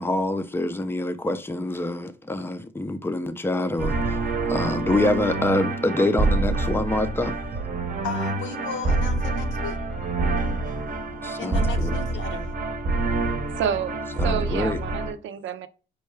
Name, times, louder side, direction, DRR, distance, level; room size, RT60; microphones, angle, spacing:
voice 1, 0.0-4.2 4.5-7.4 11.2-12.0 14.2-14.8, left 2 dB, 10° left, 0.5 m, -26 dB
sound 1, 3.8-15.1, right 3 dB, 40° right, 0.8 m, -26 dB
voice 2, 8.0-9.8 11.4-12.5, left 5 dB, 70° left, 0.9 m, -34 dB
voice 3, 13.5-13.9 14.2-15.7, right 8 dB, 75° right, 0.5 m, -29 dB
5.5 x 2.3 x 3.2 m
cardioid pair, 90°, 20 cm